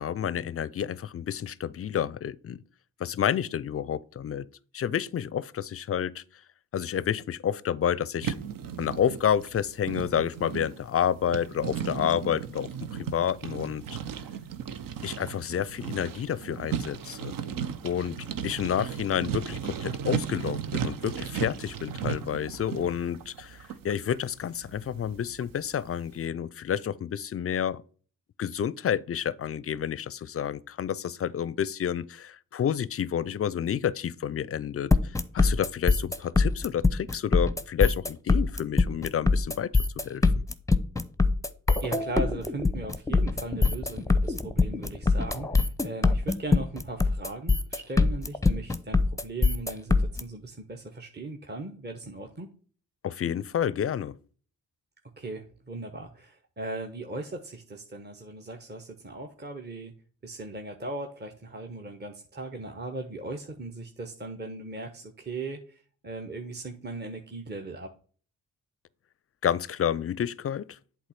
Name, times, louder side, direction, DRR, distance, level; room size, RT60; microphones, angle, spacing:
voice 1, 0.0-2.6 3.0-4.5 4.7-6.2 6.7-8.3 8.8-13.8 15.0-17.3 17.8-18.2 18.4-27.8 28.4-34.9 35.3-39.7 40.0-40.4 53.0-54.1 69.4-70.8, left 9 dB, 40° left, 0.5 m, -29 dB
sound 1, 8.2-25.9, right 8 dB, 60° right, 0.7 m, -36 dB
sound 2, 34.9-50.2, left 3 dB, 10° left, 0.7 m, -23 dB
voice 2, 41.8-52.5 55.2-59.9 60.2-67.9, right 2 dB, 25° right, 1.1 m, -38 dB
8.1 x 3.1 x 5.8 m
hypercardioid pair, 40°, 37 cm